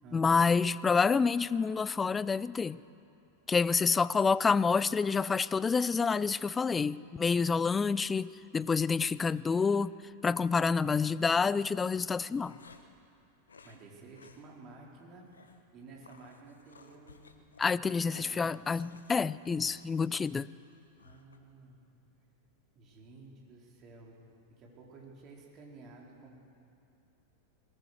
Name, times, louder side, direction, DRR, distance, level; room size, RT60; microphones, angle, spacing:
voice 1, 0.1-2.8 3.5-9.9 10.2-12.6 17.6-20.5, left 5 dB, 15° left, 20 dB, 0.4 m, -28 dB
sound 1, 10.9-11.1 11.9-13.0 13.5-13.8 14.1-14.4 14.7-14.8 15.3-15.6 16.0-21.4, left 4 dB, 70° left, 1.3 m, -57 dB
voice 2, 13.6-15.3 15.7-17.5 18.1-18.5 21.0-21.8 22.7-24.2 24.5-26.4, right 3 dB, 35° right, -2 dB, 4.6 m, -53 dB
22.0 x 18.5 x 6.7 m, 2.7 s
figure-of-eight pair, 90°, 0 cm